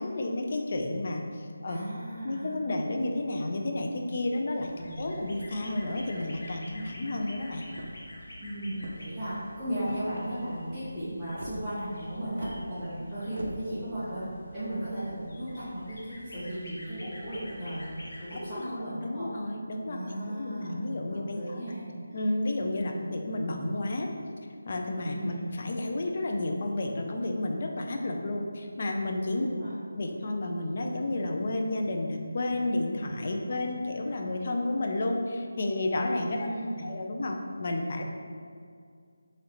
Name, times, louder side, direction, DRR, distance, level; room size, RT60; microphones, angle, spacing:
voice 1, 0.0-1.8 2.2-7.7 18.5-21.6 22.1-24.1 24.7-29.5 29.9-36.5 36.8-38.0, left 2 dB, 35° left, 2 dB, 0.4 m, -31 dB
voice 2, 1.6-2.6 4.7-5.3 8.4-14.3 14.5-19.3 19.9-22.2 22.9-23.1 25.1-25.5 29.4-29.7 33.5-33.7 36.3-37.0, right 1 dB, ahead, -22 dB, 0.7 m, -36 dB
sound 1, 4.6-18.4, left 1 dB, 60° left, 0.8 m, -48 dB
sound 2, 7.7-8.1 8.7-9.2 9.8-10.2 11.3-11.6 12.3-12.6 13.3-13.6, right 1 dB, 60° right, 0.5 m, -42 dB
3.7 x 3.1 x 3.0 m, 2.2 s
figure-of-eight pair, 175°, 0 cm